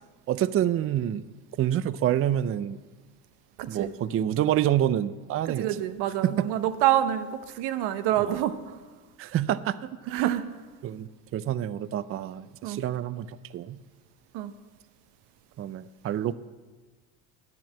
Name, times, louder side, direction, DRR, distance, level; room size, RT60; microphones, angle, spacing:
voice 1, 0.3-1.2 1.6-2.8 3.7-5.7 6.2-6.5 8.2-8.4 9.2-10.3 10.8-13.8 15.6-16.3, right 11 dB, 35° right, 15 dB, 0.4 m, -27 dB
voice 2, 3.6-3.9 5.6-8.8 10.1-10.4 12.6-12.8 14.3-14.5, right 12 dB, 70° right, 11 dB, 0.8 m, -27 dB
9.2 x 7.6 x 7.4 m, 1.3 s
supercardioid pair, 80°, 41 cm